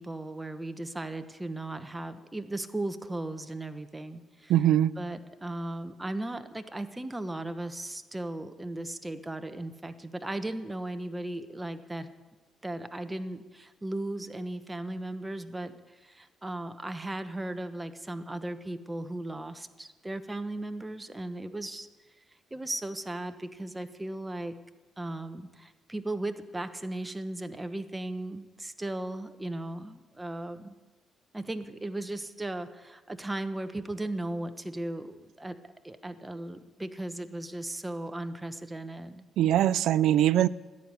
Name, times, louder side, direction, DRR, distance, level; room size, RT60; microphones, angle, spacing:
voice 1, 0.0-4.5 5.0-12.1 12.6-21.9 22.5-24.6 25.0-30.8 31.3-35.6 35.8-39.2, right 1 dB, 15° right, 1.1 m, -36 dB
voice 2, 4.5-4.9 39.4-40.5, right 12 dB, 80° right, 0.4 m, -22 dB
14.0 x 10.0 x 9.6 m
cardioid pair, 90°, 0 cm